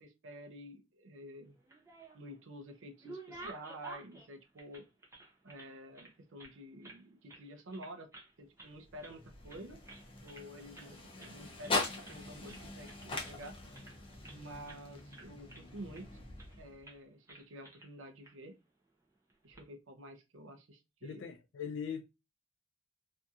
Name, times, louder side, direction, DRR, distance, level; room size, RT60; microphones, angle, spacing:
voice 1, 0.0-1.6 2.1-4.8 5.4-8.1 8.4-9.8 10.2-13.6 14.3-16.2 16.6-18.6 19.4-21.3, equal, 75° right, 0.5 m, -50 dB
sound 1, 1.5-2.4 2.7-5.7 5.9-7.0 7.3-7.5 7.7-8.3 8.6-9.2 9.5-10.5 10.7-10.9 11.2-11.4 11.6-12.2 12.5-14.4 14.7-14.8 15.1-16.0 16.4-16.6 16.8-17.0 17.3-17.9 18.2-18.3 19.3-19.6, right 2 dB, 15° right, 0.6 m, -52 dB
sound 2, 8.7-17.0, left 3 dB, 30° left, 0.6 m, -42 dB
voice 2, 21.0-22.1, left 7 dB, 70° left, 0.3 m, -41 dB
2.7 x 2.6 x 2.3 m
head